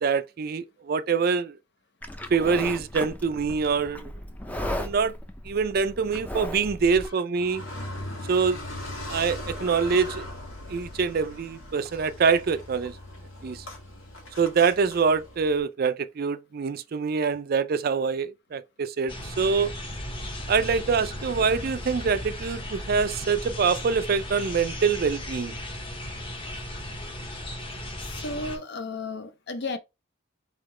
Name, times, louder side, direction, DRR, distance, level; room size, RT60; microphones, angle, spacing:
voice 1, 0.0-1.6 2.3-4.1 4.8-5.1 5.4-7.7 8.3-8.6 9.1-10.3 10.7-13.0 13.4-13.7 14.4-19.7 20.5-25.6, right 5 dB, 50° right, 0.4 m, -25 dB
Livestock farm animals working animals, 2.0-7.1, left 1 dB, 10° left, 0.5 m, -36 dB
Car, 7.3-15.6, left 1 dB, 85° left, 1.8 m, -39 dB
sound 1, 19.1-28.6, left 1 dB, 25° left, 0.9 m, -36 dB
voice 2, 28.0-29.8, left 3 dB, 55° left, 0.6 m, -34 dB
4.4 x 3.6 x 3.2 m
head